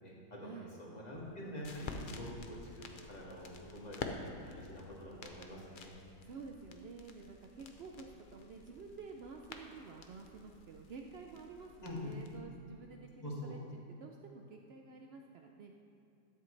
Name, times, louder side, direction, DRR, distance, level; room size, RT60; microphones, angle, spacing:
voice 1, 0.0-5.9 11.8-12.1 13.2-13.5, left 1 dB, 25° left, -5 dB, 2.0 m, -46 dB
sound 1, 1.1-12.4, left 3 dB, 55° left, 0.5 m, -50 dB
voice 2, 6.2-13.6 13.9-15.7, right 4 dB, 70° right, 2 dB, 0.6 m, -50 dB
12.0 x 9.8 x 3.3 m, 2.7 s
omnidirectional pair, 1.7 m